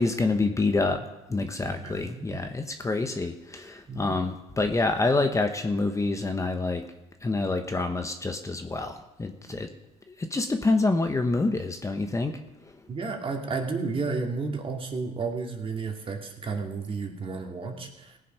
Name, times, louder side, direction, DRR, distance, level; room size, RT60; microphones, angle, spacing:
voice 1, 0.0-6.9 7.2-9.7 10.1-12.4, left 3 dB, 20° left, 6 dB, 1.1 m, -27 dB
voice 2, 1.6-2.4 3.9-4.2 12.9-18.2, right 4 dB, 35° right, 3 dB, 2.3 m, -32 dB
17.0 x 7.6 x 5.7 m, 0.98 s
supercardioid pair, 80°, 16 cm